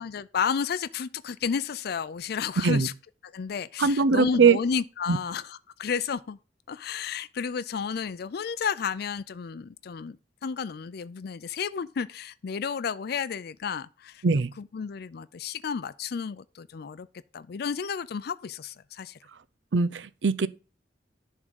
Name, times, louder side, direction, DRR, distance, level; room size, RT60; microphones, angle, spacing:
voice 1, 0.0-2.9 3.2-6.4 6.7-14.2 14.7-17.1 17.3-19.2, left 6 dB, 60° left, 0.4 m, -32 dB
voice 2, 3.8-4.6 5.1-5.2 14.2-14.5 19.7-20.5, right 5 dB, 90° right, 0.6 m, -21 dB
11.0 x 3.7 x 6.3 m
head